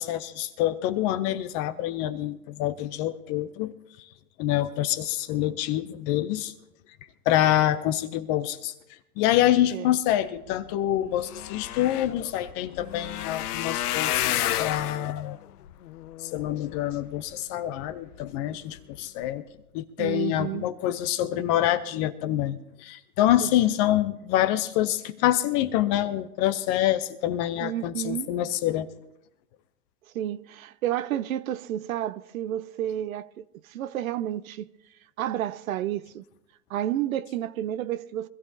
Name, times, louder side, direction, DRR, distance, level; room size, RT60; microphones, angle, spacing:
voice 1, 0.0-3.7 4.4-6.5 7.3-8.7 9.2-15.4 16.2-19.4 19.7-28.9, left 13 dB, 25° left, 0.5 m, -26 dB
sound 1, 10.7-10.8 11.0-17.3 17.9-18.3 18.8-19.0 19.2-19.3, left 13 dB, 70° left, 0.6 m, -31 dB
voice 2, 20.0-20.7 23.4-23.5 27.6-28.3 30.1-34.7 35.2-36.2 36.7-38.3, right 12 dB, 60° right, 0.7 m, -31 dB
24.5 x 14.0 x 2.7 m
hypercardioid pair, 120°, 47 cm